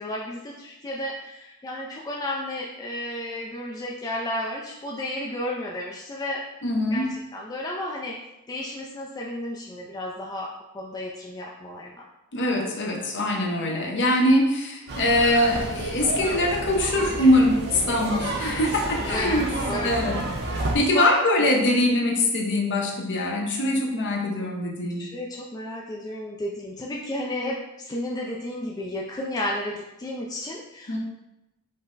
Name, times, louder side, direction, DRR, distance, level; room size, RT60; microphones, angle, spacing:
voice 1, 0.0-6.4 6.9-8.2 8.5-10.5 10.7-12.0 19.0-20.0 20.9-21.1 25.0-31.0, left 1 dB, 15° left, -2 dB, 0.3 m, -32 dB
voice 2, 6.6-7.1 12.3-19.5 19.8-20.2 20.7-25.0 30.9-31.0, left 1 dB, 55° left, 0 dB, 0.8 m, -23 dB
sound 1, 14.9-20.8, right 2 dB, 50° right, 0.6 m, -30 dB
5.4 x 2.1 x 3.8 m, 0.94 s
head